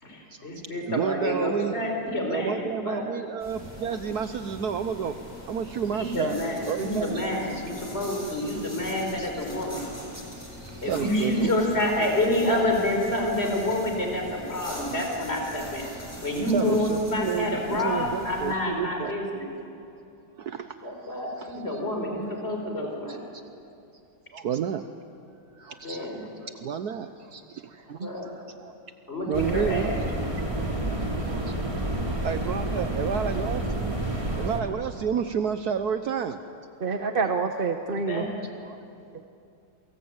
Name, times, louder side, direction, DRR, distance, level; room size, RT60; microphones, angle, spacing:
voice 1, 0.0-3.0 5.9-9.9 10.8-15.9 16.2-19.5 20.8-23.2 25.8-26.2 28.0-28.3 29.1-30.0 37.9-38.4, left 1 dB, 35° left, 2 dB, 4.7 m, -28 dB
voice 2, 0.9-1.7 2.3-5.1 5.5-6.4 6.7-7.7 9.2-9.4 10.5-12.1 16.5-19.2 20.4-21.8 23.1-23.4 24.3-24.9 25.6-28.8 29.3-30.0 30.9-31.6 32.2-33.9 34.4-36.4 38.2-38.3 38.6-38.8, right 7 dB, 65° right, 9 dB, 1.3 m, -31 dB
sound 1, 3.4-18.5, equal, 15° left, 6.1 m, -42 dB
sound 2, 29.3-34.6, right 1 dB, 20° right, 3.2 m, -29 dB
voice 3, 36.8-38.3, right 4 dB, 40° right, 6 dB, 1.0 m, -27 dB
28.5 x 23.5 x 8.9 m, 2.6 s
omnidirectional pair, 1.9 m